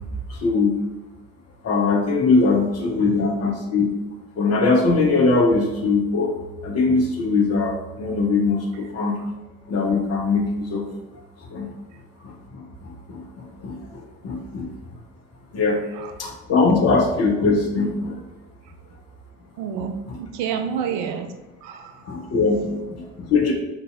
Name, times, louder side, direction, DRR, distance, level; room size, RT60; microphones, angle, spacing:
voice 1, 0.3-0.8 1.6-3.9 4.4-6.3 6.6-9.2 9.7-10.9 11.5-11.7 12.2-14.7 15.5-15.8 16.2-18.2 19.8-20.2 22.1-23.5, left 3 dB, 35° left, 0 dB, 0.7 m, -21 dB
voice 2, 19.6-19.9 20.2-21.3 21.6-22.1, right 7 dB, 50° right, 6 dB, 0.4 m, -28 dB
2.9 x 2.7 x 2.3 m, 1.1 s
figure-of-eight pair, 50°, 41 cm